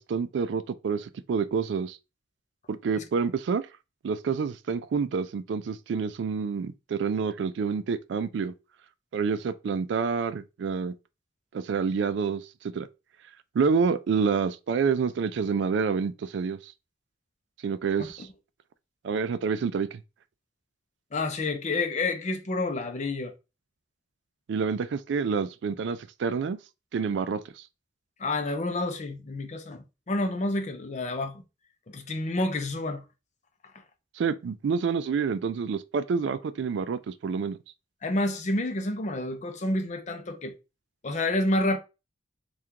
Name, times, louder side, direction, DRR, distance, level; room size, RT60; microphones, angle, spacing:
voice 1, 0.0-2.0 2.7-3.6 4.0-8.5 9.1-10.9 11.5-12.4 12.7-12.9 13.5-16.6 17.6-18.2 19.0-19.9 24.5-26.6 26.9-27.4 34.2-37.6, right 5 dB, 65° right, 0.3 m, -28 dB
voice 2, 21.1-23.3 28.2-31.4 31.9-33.0 38.0-40.5 41.0-41.8, left 2 dB, 40° left, 0.5 m, -29 dB
3.6 x 2.4 x 2.8 m
head